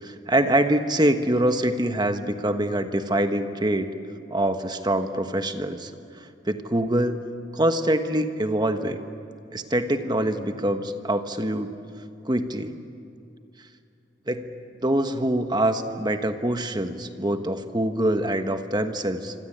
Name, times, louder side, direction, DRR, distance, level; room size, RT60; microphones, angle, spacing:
voice 1, 0.0-3.9 4.3-5.9 6.2-7.2 7.5-9.0 9.5-11.7 12.2-12.7 14.3-14.5 14.8-19.3, right 1 dB, 25° right, 7 dB, 1.3 m, -24 dB
26.0 x 26.0 x 8.8 m, 2.5 s
head